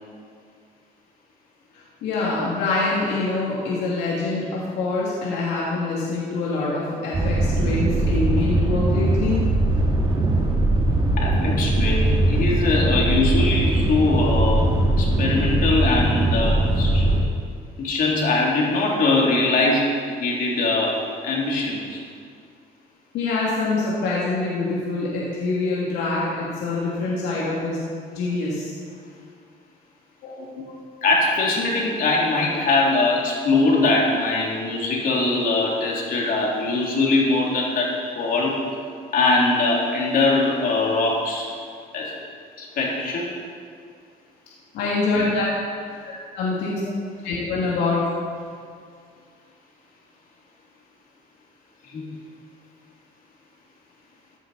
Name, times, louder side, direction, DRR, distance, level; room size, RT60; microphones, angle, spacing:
voice 1, 2.0-9.4 23.1-27.9 28.1-28.7 30.2-30.8 44.7-45.5 46.0-46.8 47.2-48.0, left 3 dB, 80° left, -6 dB, 2.7 m, -25 dB
sound 1, 7.1-17.2, right 1 dB, 30° right, 2.0 m, -20 dB
voice 2, 11.2-14.7 15.0-17.0 17.8-19.8 20.2-21.0 21.2-22.0 31.0-38.6 39.1-41.5 41.9-42.1 42.6-43.2 51.9-52.1, left 3 dB, 55° left, -3 dB, 3.3 m, -22 dB
15.0 x 10.0 x 4.3 m, 2.2 s
cardioid pair, 110°, 17 cm